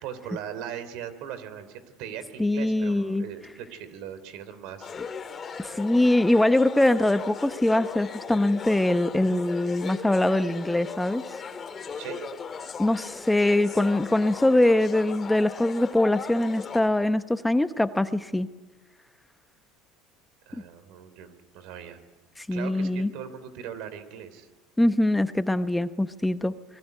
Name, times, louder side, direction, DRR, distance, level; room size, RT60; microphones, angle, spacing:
voice 1, 0.0-4.9 11.9-12.3 20.5-22.0 22.5-24.5, right 9 dB, 70° right, 12 dB, 3.4 m, -39 dB
voice 2, 2.4-3.3 5.6-11.2 12.8-18.5 22.4-23.1 24.8-26.5, left 1 dB, 5° left, 11 dB, 0.9 m, -23 dB
sound 1, 4.8-16.9, left 6 dB, 30° left, 2.4 m, -38 dB
25.0 x 21.0 x 9.4 m, 1.2 s
supercardioid pair, 100°, 0 cm